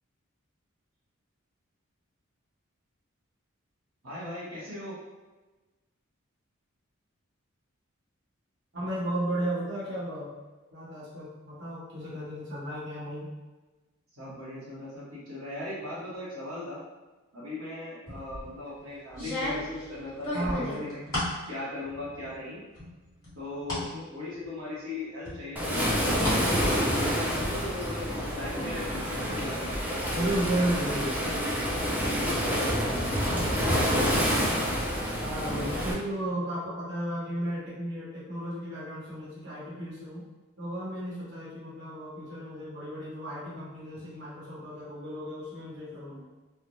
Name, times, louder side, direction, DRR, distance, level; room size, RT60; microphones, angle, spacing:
voice 1, 4.0-4.9 14.1-16.8 17.3-21.0 21.5-22.6 23.3-26.4 27.1-31.4, left 1 dB, 90° right, -8 dB, 1.0 m, -38 dB
voice 2, 8.7-10.3 10.7-13.3 20.3-20.9 26.3-26.7 30.1-31.1 35.2-40.2 40.6-46.3, right 1 dB, 55° right, -8 dB, 1.0 m, -34 dB
sound 1, 18.1-18.5 19.1-21.4 21.8-22.4 22.8-23.9 24.3-24.4 25.3-26.4 26.7-27.5, left 1 dB, 15° left, 1.2 m, -34 dB
Waves surf, 25.6-35.9, equal, 10° right, 0.3 m, -28 dB
3.1 x 2.1 x 2.6 m, 1.2 s
head